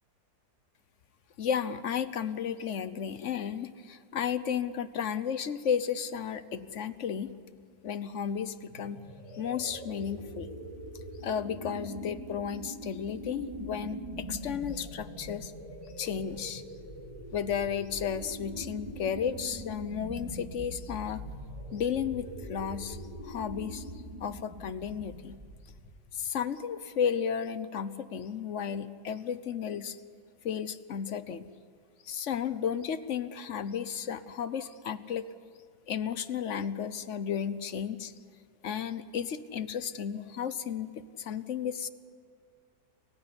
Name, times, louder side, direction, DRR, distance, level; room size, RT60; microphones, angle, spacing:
voice 1, 1.4-7.3 7.8-9.0 9.3-10.5 11.2-15.5 16.0-16.6 17.3-21.2 21.7-23.9 24.2-25.4 26.1-30.0 30.4-31.5 32.0-35.3 35.9-38.1 38.6-41.9, left 8 dB, 55° left, 14 dB, 1.1 m, -33 dB
sound 1, 8.7-26.1, equal, 20° right, 4.0 m, -43 dB
29.5 x 16.0 x 9.8 m, 2.1 s
omnidirectional pair, 1.8 m